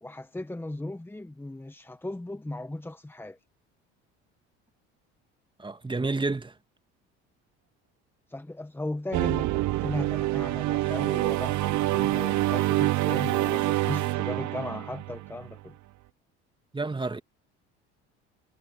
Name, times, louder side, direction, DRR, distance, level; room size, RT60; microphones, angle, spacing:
voice 1, 0.0-3.4 8.3-15.8, left 2 dB, 5° left, 1.2 m, -37 dB
voice 2, 5.6-6.5 16.7-17.2, right 3 dB, 15° right, 2.0 m, -29 dB
sound 1, 9.1-15.6, right 17 dB, 60° right, 1.1 m, -26 dB
sound 2, 10.8-14.2, right 6 dB, 40° right, 5.2 m, -51 dB
hypercardioid pair, 70°, 33 cm